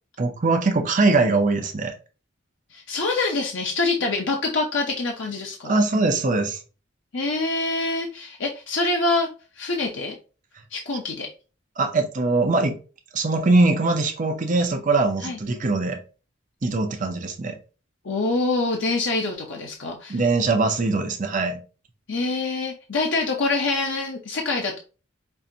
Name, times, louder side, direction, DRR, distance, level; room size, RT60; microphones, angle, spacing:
voice 1, 0.2-1.9 5.6-6.6 11.8-12.8 13.1-16.0 16.6-17.5 20.1-21.6, right 3 dB, 40° right, 0.6 m, -22 dB
voice 2, 2.7-5.8 7.1-9.3 9.6-10.1 10.7-11.3 15.2-15.4 18.0-20.2 22.1-24.8, left 3 dB, 70° left, 0.7 m, -25 dB
5.5 x 2.5 x 2.7 m
head